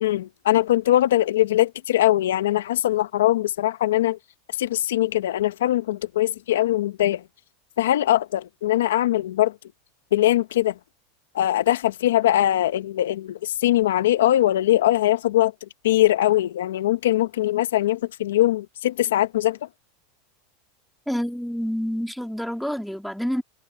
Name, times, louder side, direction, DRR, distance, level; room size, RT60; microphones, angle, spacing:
voice 1, 0.0-4.2 4.6-7.2 7.8-9.5 10.1-10.7 11.3-15.5 15.8-19.6, left 13 dB, 90° left, 1.0 m, -21 dB
voice 2, 21.1-23.4, equal, ahead, 3.1 m, -28 dB
supercardioid pair, 130°, 0 cm